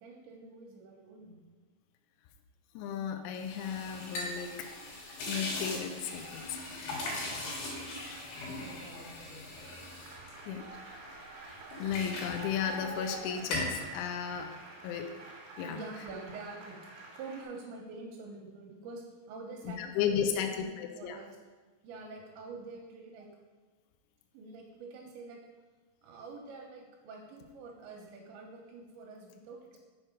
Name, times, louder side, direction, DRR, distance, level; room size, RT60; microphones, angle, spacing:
voice 1, 0.0-1.4 7.0-7.5 8.4-9.8 10.2-10.3 15.7-16.9 17.2-21.4 21.8-23.3 24.3-25.4 26.0-29.8, right 3 dB, 80° right, 0 dB, 2.7 m, -47 dB
voice 2, 2.7-4.7 5.3-7.1 10.5-11.0 11.4-14.5 14.8-15.1 15.6-15.8 19.6-21.2, left 8 dB, 85° left, 5 dB, 2.7 m, -35 dB
sound 1, 3.3-11.1 11.5-13.1 13.4-13.8, left 2 dB, 60° left, 3.2 m, -39 dB
Applause, 9.5-17.4, right 3 dB, 60° right, 1.9 m, -48 dB
6.4 x 5.9 x 5.1 m, 1.3 s
omnidirectional pair, 6.0 m